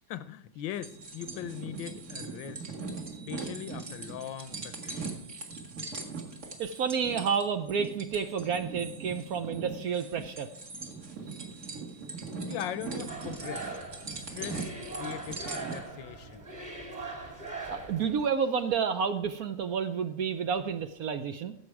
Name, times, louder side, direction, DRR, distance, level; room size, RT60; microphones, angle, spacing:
voice 1, 0.1-2.6 3.3-5.2 12.4-13.7 14.1-16.5, left 11 dB, 80° left, 1.4 m, -40 dB
sound 1, 0.7-15.8, right 4 dB, 40° right, 2.0 m, -40 dB
voice 2, 6.6-10.5 17.7-21.5, right 6 dB, 65° right, 1.0 m, -30 dB
sound 2, 13.1-18.3, right 3 dB, 25° right, 2.0 m, -41 dB
16.0 x 7.5 x 4.7 m
omnidirectional pair, 2.0 m